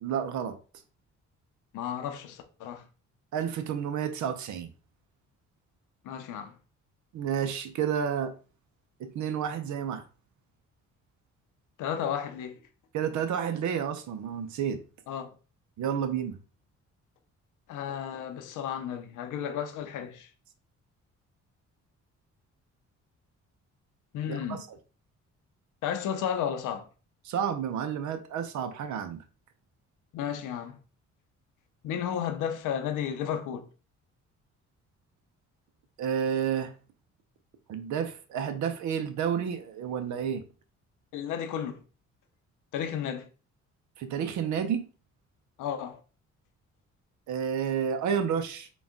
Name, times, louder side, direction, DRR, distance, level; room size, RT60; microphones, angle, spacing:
voice 1, 0.0-0.6 3.3-4.7 7.1-8.3 9.0-10.0 12.9-14.8 15.8-16.4 24.3-24.8 27.2-29.2 36.0-36.7 37.7-40.4 44.0-44.9 47.3-48.7, right 8 dB, 70° right, 0.6 m, -30 dB
voice 2, 1.7-2.8 6.0-6.5 11.8-12.5 15.1-15.3 17.7-20.3 24.1-24.6 25.8-26.8 30.1-30.8 31.8-33.7 41.1-41.8 42.7-43.3 45.6-46.0, left 9 dB, 85° left, 0.7 m, -33 dB
4.0 x 2.3 x 3.6 m
cardioid pair, 90°, 30 cm